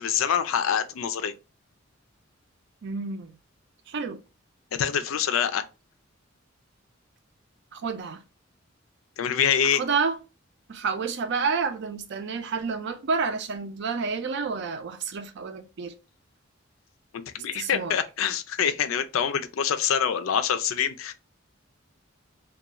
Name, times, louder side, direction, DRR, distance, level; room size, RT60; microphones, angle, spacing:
voice 1, 0.0-1.3 4.7-5.6 9.2-9.8 17.1-21.1, left 8 dB, 85° left, 0.4 m, -25 dB
voice 2, 2.8-3.4 3.9-4.2 7.7-8.2 9.6-10.2 10.7-15.9 17.5-18.0, right 5 dB, 60° right, 0.4 m, -29 dB
2.4 x 2.2 x 2.9 m
head